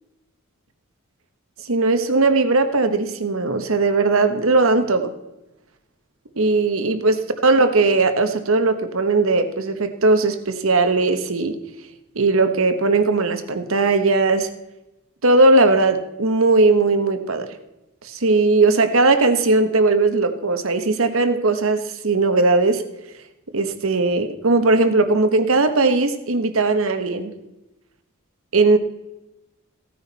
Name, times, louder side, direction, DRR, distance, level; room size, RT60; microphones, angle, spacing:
voice 1, 1.7-5.1 6.4-11.6 12.1-14.5 15.2-17.5 18.0-22.8 23.5-27.3 28.5-28.8, right 3 dB, 70° right, 8 dB, 1.2 m, -18 dB
15.5 x 9.7 x 4.1 m, 0.95 s
head